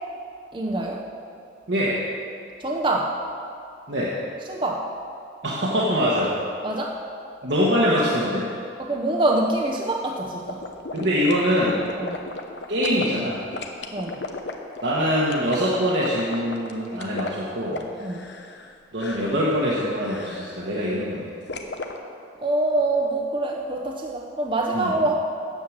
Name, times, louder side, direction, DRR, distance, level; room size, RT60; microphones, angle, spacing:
voice 1, 0.5-1.1 2.6-3.1 4.5-4.9 6.6-7.0 8.8-10.6 12.0-12.3 13.9-14.2 18.0-18.3 22.4-25.2, right 2 dB, 25° right, 0 dB, 0.7 m, -25 dB
voice 2, 1.7-2.0 3.9-4.1 5.4-6.4 7.4-8.5 10.9-11.8 12.7-13.4 14.8-17.8 18.9-21.3 24.7-24.9, equal, 65° right, -6 dB, 1.4 m, -23 dB
sound 1, 10.5-13.1 13.5-18.7 19.0-19.4 20.0-20.6 21.5-21.9, left 3 dB, 65° left, 0.9 m, -34 dB
9.4 x 7.6 x 7.4 m, 2.4 s
head